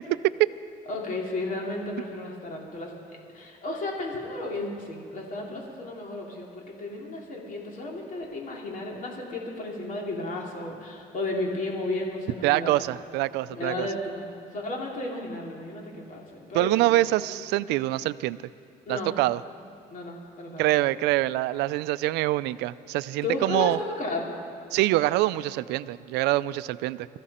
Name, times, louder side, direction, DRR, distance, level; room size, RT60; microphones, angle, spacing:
voice 1, 0.9-12.8 13.5-14.3 14.5-17.3 18.9-19.1 19.9-20.7 23.2-24.4, left 2 dB, 50° left, -1 dB, 3.1 m, -33 dB
voice 2, 12.4-13.9 16.5-18.4 18.9-19.4 20.6-23.8 24.7-27.1, right 17 dB, 90° right, 16 dB, 0.4 m, -25 dB
23.5 x 14.5 x 4.3 m, 2.3 s
cardioid pair, 110°, 17 cm